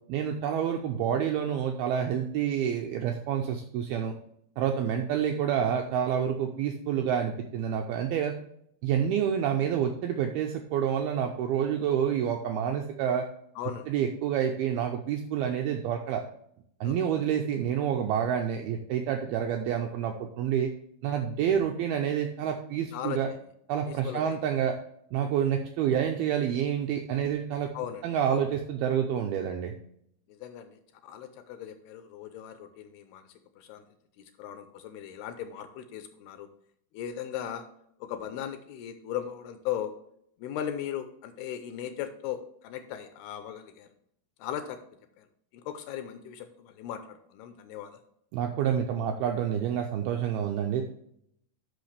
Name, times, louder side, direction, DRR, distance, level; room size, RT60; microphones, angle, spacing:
voice 1, 0.1-4.1 4.6-8.3 8.8-13.2 13.9-16.2 16.8-20.7 21.0-23.3 23.7-24.7 25.1-27.7 28.0-29.7 48.3-50.8, right 9 dB, 85° right, 3 dB, 2.2 m, -28 dB
voice 2, 13.6-13.9 16.8-17.0 22.9-23.2 23.9-24.4 27.7-28.5 30.3-33.2 33.6-33.8 34.2-36.5 36.9-37.7 38.0-39.9 40.4-43.9 44.4-44.8 45.2-45.3 45.5-48.0, left 10 dB, 80° left, 9 dB, 2.4 m, -38 dB
12.0 x 5.7 x 3.3 m, 0.70 s
omnidirectional pair, 5.2 m